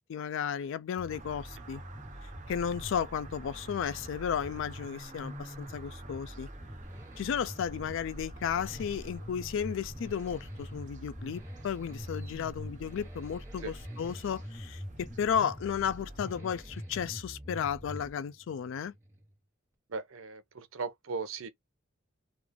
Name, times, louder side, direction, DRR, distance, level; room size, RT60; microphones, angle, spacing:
voice 1, 0.0-1.8 2.5-6.5 7.2-18.9, left 8 dB, 65° left, 0.3 m, -34 dB
sound 1, 1.0-18.1, equal, 20° left, 1.1 m, -44 dB
sound 2, 1.1-16.4, right 2 dB, 40° right, 0.7 m, -52 dB
Accelerating revving vroom, 2.2-19.5 19.7-19.8, right 2 dB, 15° right, 1.1 m, -60 dB
voice 2, 19.9-21.5, right 4 dB, 85° right, 0.7 m, -38 dB
3.3 x 2.4 x 3.5 m
head